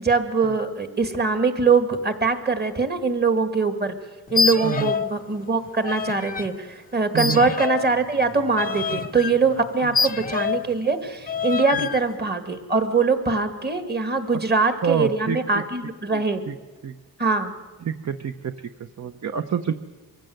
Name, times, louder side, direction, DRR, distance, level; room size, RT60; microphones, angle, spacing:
voice 1, 0.0-4.0 4.3-16.4 17.2-17.5, right 4 dB, 25° right, 8 dB, 1.8 m, -22 dB
sound 1, 4.3-5.2 5.4-6.5 7.2-10.7 11.3-12.0, left 5 dB, 25° left, 0.7 m, -26 dB
voice 2, 7.1-7.5 8.9-9.0 9.8-9.9 11.7-11.9 14.8-15.6 16.1-16.5 16.8-17.0 17.8-18.5 18.8-19.7, right 7 dB, 50° right, 8 dB, 0.8 m, -28 dB
23.5 x 15.5 x 7.8 m, 1.3 s
wide cardioid pair, 145°, 36 cm